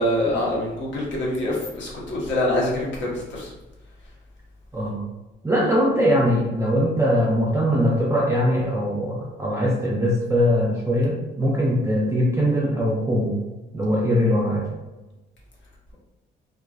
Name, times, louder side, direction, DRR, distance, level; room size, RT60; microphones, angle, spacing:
voice 1, 0.0-3.5, left 1 dB, 70° left, -4 dB, 0.9 m, -25 dB
voice 2, 5.4-13.4 13.7-14.6, equal, 15° right, -4 dB, 0.4 m, -21 dB
2.4 x 2.3 x 2.2 m, 1.1 s
cardioid pair, 90°, 20 cm